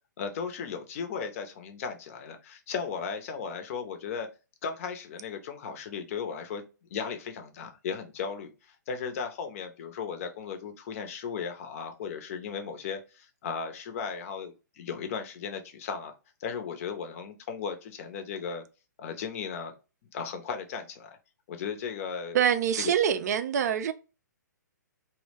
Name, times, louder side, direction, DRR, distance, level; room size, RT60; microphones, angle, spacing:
voice 1, 0.2-4.3 4.6-6.6 6.9-16.2 16.4-18.6 19.0-19.7 20.1-21.2 21.5-22.4 22.8-22.9, left 6 dB, 45° left, 0.6 m, -36 dB
voice 2, 22.3-23.9, right 8 dB, 55° right, 0.4 m, -25 dB
2.2 x 2.1 x 3.2 m
hypercardioid pair, 130°, 10 cm